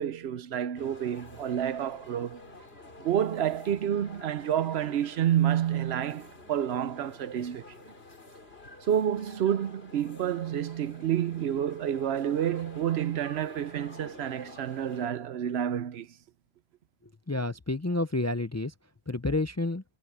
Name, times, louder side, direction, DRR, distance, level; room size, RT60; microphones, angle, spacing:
voice 1, 0.0-2.4 3.0-7.7 8.9-16.1, right 10 dB, 75° right, 0.9 m, -29 dB
sound 1, 0.7-15.1, left 2 dB, 70° left, 3.6 m, -49 dB
voice 2, 17.3-18.7 19.1-19.8, left 2 dB, 20° left, 0.4 m, -29 dB
omnidirectional pair, 1.1 m